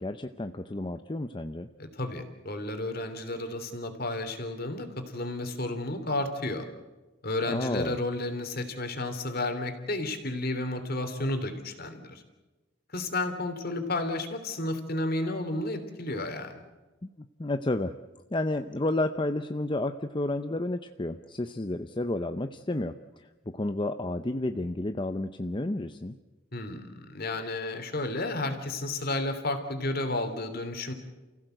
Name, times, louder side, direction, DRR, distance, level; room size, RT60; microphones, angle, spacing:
voice 1, 0.0-1.7 7.5-8.0 17.2-17.9 18.3-26.2, left 2 dB, 25° left, 8 dB, 0.7 m, -31 dB
voice 2, 1.8-6.7 7.2-12.2 12.9-16.6 26.5-30.9, left 2 dB, 50° left, 7 dB, 3.2 m, -32 dB
29.5 x 16.0 x 7.9 m, 1.2 s
head